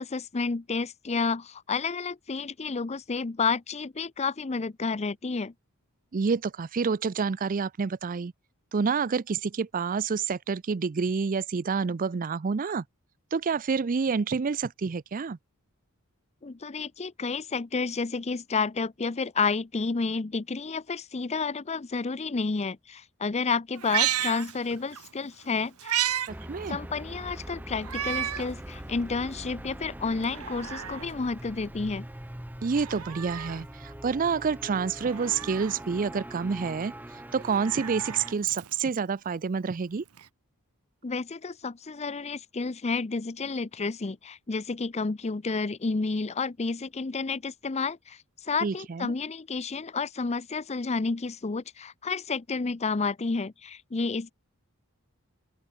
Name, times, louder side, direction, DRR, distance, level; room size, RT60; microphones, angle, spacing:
voice 1, 0.0-5.5 16.4-25.9 26.7-32.1 41.0-54.3, left 4 dB, 30° left, 0.6 m, -30 dB
voice 2, 6.1-8.3 8.7-12.8 13.3-15.4 26.3-26.8 32.6-36.9 37.3-40.0 48.6-49.1, right 5 dB, 40° right, 0.4 m, -28 dB
Meow, 23.8-25.1 25.4-26.3 26.7-26.8 27.8-28.5 29.0-29.1 30.1-31.1 32.6-33.6 35.0-35.8 37.3-39.0 40.2-40.3, right 11 dB, 75° right, 1.1 m, -32 dB
sound 1, 26.3-38.3, right 1 dB, 10° right, 1.1 m, -42 dB
open air
head